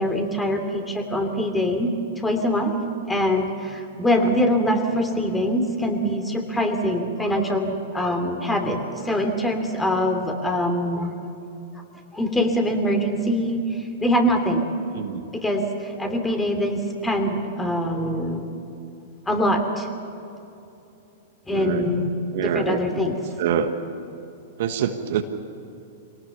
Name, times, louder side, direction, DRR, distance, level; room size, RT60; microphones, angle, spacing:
voice 1, 0.0-2.7 3.1-11.1 12.1-14.6 15.3-18.5 19.3-19.9 21.5-23.2, equal, 10° left, 4 dB, 3.0 m, -23 dB
voice 2, 15.0-15.3 21.5-21.9 22.3-22.8 23.4-23.7 24.6-25.2, right 9 dB, 60° right, 7 dB, 1.3 m, -25 dB
25.0 x 18.5 x 7.0 m, 2.8 s
hypercardioid pair, 105°, 0 cm